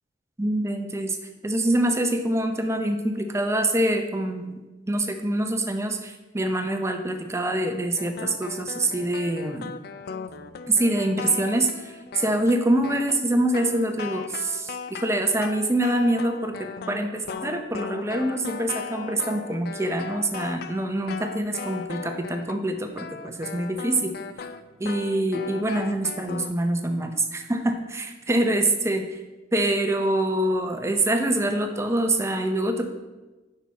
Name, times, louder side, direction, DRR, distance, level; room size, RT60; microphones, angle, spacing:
voice 1, 0.4-1.2 1.4-4.6 4.9-9.7 10.7-24.1 24.8-29.1 29.5-32.9, right 1 dB, 15° right, 6 dB, 0.6 m, -25 dB
sound 1, 8.0-22.7 22.9-26.5, left 5 dB, 50° left, 0.4 m, -37 dB
9.3 x 5.7 x 4.1 m, 1.2 s
head